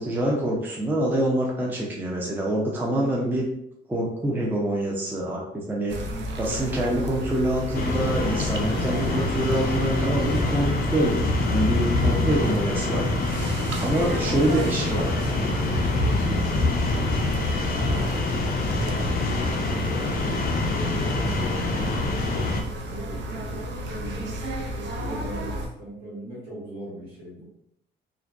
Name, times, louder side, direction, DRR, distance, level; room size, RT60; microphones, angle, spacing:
voice 1, 0.0-3.4 3.9-5.4 5.7-6.0 6.4-11.1 11.4-13.1 13.8-15.1, right 1 dB, 10° right, -3 dB, 0.5 m, -25 dB
sound 1, 5.9-25.7, equal, 65° right, 0.4 m, -32 dB
sound 2, 7.7-22.6, left 2 dB, 50° left, 0.4 m, -26 dB
voice 2, 14.0-22.5 22.8-24.4 24.7-27.4, right 1 dB, 85° right, -7 dB, 1.2 m, -39 dB
2.5 x 2.1 x 2.4 m, 0.78 s
cardioid pair, 90°, 20 cm